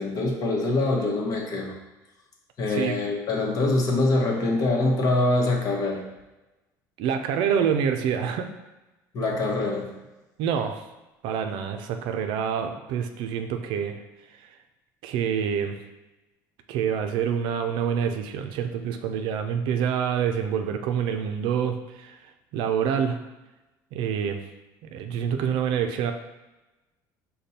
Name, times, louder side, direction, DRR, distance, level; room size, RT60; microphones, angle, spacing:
voice 1, 0.0-1.7 2.6-6.0 9.1-9.9, left 2 dB, 45° left, 0 dB, 1.0 m, -24 dB
voice 2, 7.0-8.5 10.4-10.8 11.2-14.0 15.0-15.8 16.7-22.2 22.5-23.2 23.9-24.4 24.8-26.1, right 7 dB, 70° right, 6 dB, 0.5 m, -26 dB
5.2 x 2.2 x 4.2 m, 1.1 s
supercardioid pair, 110°, 8 cm